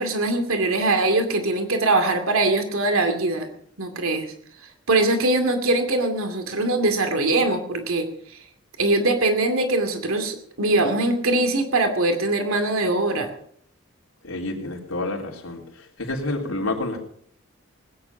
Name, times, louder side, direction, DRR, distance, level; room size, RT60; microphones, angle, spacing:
voice 1, 0.0-3.5 3.8-4.3 4.9-8.4 8.8-13.3, right 2 dB, 90° right, 6 dB, 2.4 m, -22 dB
voice 2, 14.2-15.6 16.0-17.0, left 2 dB, 85° left, 0 dB, 3.7 m, -28 dB
20.0 x 10.0 x 5.9 m, 0.64 s
head